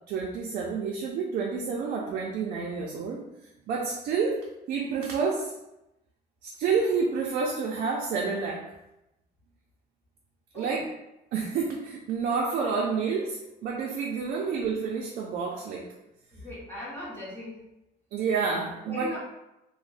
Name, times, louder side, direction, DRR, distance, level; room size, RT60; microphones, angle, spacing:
voice 1, 0.1-3.2 3.7-4.4 4.7-5.5 6.4-8.6 10.5-10.8 11.3-15.9 18.1-19.1, right 5 dB, 55° right, -2 dB, 0.4 m, -29 dB
voice 2, 16.3-17.6 18.8-19.2, equal, 10° left, -8 dB, 0.8 m, -39 dB
2.6 x 2.1 x 3.3 m, 0.90 s
cardioid pair, 165°, 17 cm